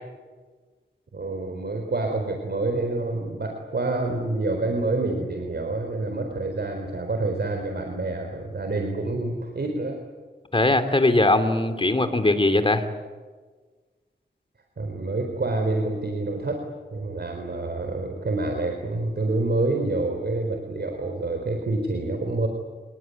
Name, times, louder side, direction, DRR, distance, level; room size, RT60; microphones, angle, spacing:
voice 1, 1.1-10.0 14.8-16.6 16.9-22.5, right 2 dB, 65° right, 3 dB, 4.0 m, -27 dB
voice 2, 10.5-12.8, left 2 dB, 30° left, 8 dB, 3.0 m, -20 dB
27.5 x 21.0 x 9.6 m, 1.4 s
wide cardioid pair, 75°, 18 cm